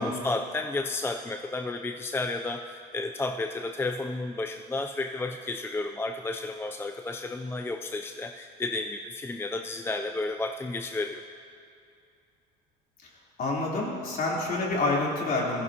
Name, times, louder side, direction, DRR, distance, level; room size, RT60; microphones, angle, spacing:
voice 1, 0.0-11.2, left 2 dB, 10° left, 5 dB, 0.4 m, -32 dB
voice 2, 13.4-15.6, left 2 dB, 45° left, -4 dB, 3.6 m, -28 dB
16.5 x 15.0 x 2.9 m, 2.4 s
cardioid pair, 105°, 20 cm